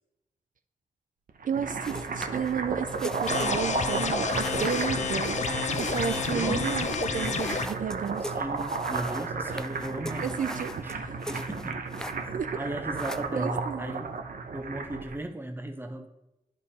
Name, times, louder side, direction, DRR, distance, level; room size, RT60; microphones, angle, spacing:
sound 1, 1.3-15.2, right 4 dB, 85° right, 0.8 m, -33 dB
voice 1, 1.4-5.4 5.8-8.3 10.2-11.2 12.3-12.6 13.3-13.9, right 7 dB, 65° right, 10 dB, 0.4 m, -32 dB
sound 2, 1.8-12.5 12.8-14.2, equal, 5° left, 0.4 m, -42 dB
sound 3, 3.3-7.7, left 5 dB, 55° left, 0.6 m, -30 dB
voice 2, 6.3-6.7 7.2-7.6 8.2-11.8 12.5-14.1 14.5-16.1, right 1 dB, 15° right, 6 dB, 0.9 m, -36 dB
11.0 x 5.2 x 4.2 m, 0.94 s
wide cardioid pair, 110°, 14 cm